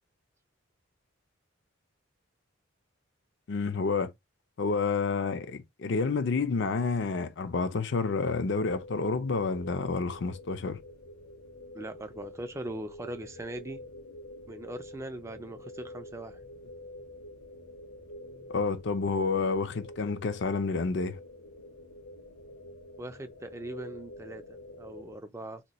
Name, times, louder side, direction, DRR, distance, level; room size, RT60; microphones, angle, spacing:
voice 1, 3.5-4.1 4.6-10.8 18.5-21.2, left 4 dB, 55° left, 0.5 m, -29 dB
sound 1, 8.5-25.2, left 1 dB, 85° left, 1.2 m, -47 dB
voice 2, 11.7-13.8 14.5-16.4 23.0-25.6, right 1 dB, 15° right, 0.4 m, -40 dB
2.9 x 2.2 x 4.0 m
head